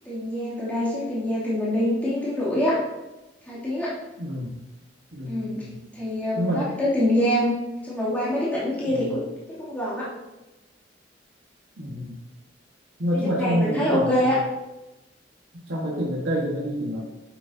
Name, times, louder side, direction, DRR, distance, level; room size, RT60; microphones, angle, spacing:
voice 1, 0.0-2.8 3.5-4.0 5.3-5.6 5.9-7.5 7.8-9.2 9.5-10.1 13.1-14.4, left 1 dB, 10° left, -9 dB, 2.7 m, -25 dB
voice 2, 4.2-4.5 5.1-5.8 6.3-6.8 8.9-9.1 11.8-12.2 13.0-14.4 15.7-17.0, equal, 80° right, -4 dB, 1.6 m, -27 dB
11.0 x 7.5 x 2.8 m, 1.0 s
head